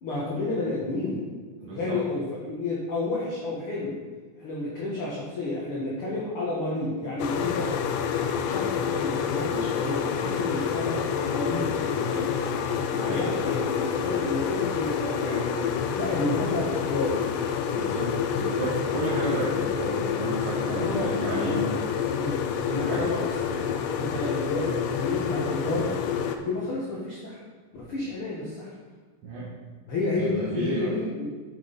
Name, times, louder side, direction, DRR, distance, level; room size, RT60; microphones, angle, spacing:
voice 1, 0.0-1.2 1.7-3.9 4.4-7.7 8.4-11.7 13.0-15.5 16.0-17.2 20.7-21.8 22.1-22.4 22.9-25.9 26.4-27.4 27.7-28.7 29.9-31.3, left 2 dB, 60° left, -6 dB, 1.4 m, -31 dB
voice 2, 1.6-2.0 11.9-12.3 12.9-13.3 17.7-18.1 18.4-21.7 22.7-23.0 29.2-29.5 30.2-30.9, right 2 dB, 55° right, -9 dB, 2.2 m, -32 dB
sound 1, 7.2-26.4, left 7 dB, 85° left, 2.0 m, -28 dB
9.5 x 6.0 x 4.0 m, 1.4 s
omnidirectional pair, 4.4 m